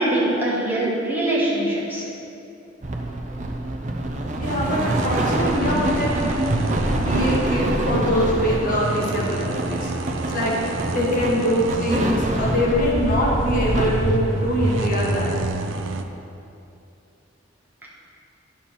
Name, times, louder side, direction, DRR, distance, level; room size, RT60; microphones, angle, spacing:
voice 1, 0.0-2.1 3.9-4.0, right 1 dB, 10° right, -6 dB, 1.5 m, -23 dB
sound 1, 2.8-15.5, right 1 dB, 40° right, 0.7 m, -25 dB
voice 2, 4.4-6.2 7.0-9.9 10.3-15.3, equal, 45° left, -4 dB, 1.8 m, -23 dB
sound 2, 4.4-16.0, right 2 dB, 85° right, 0.6 m, -30 dB
11.0 x 7.1 x 4.4 m, 2.7 s
head